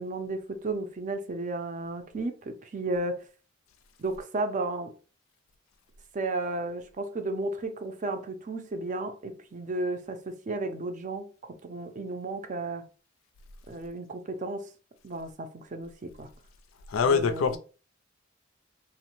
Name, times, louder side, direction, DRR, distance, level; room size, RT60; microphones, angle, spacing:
voice 1, 0.0-3.2 4.0-4.9 6.1-12.9 13.7-14.7 15.0-16.3 17.0-17.6, right 2 dB, 40° right, 0.5 m, -33 dB
voice 2, 16.9-17.6, left 6 dB, 80° left, 0.4 m, -24 dB
2.9 x 2.0 x 3.0 m
head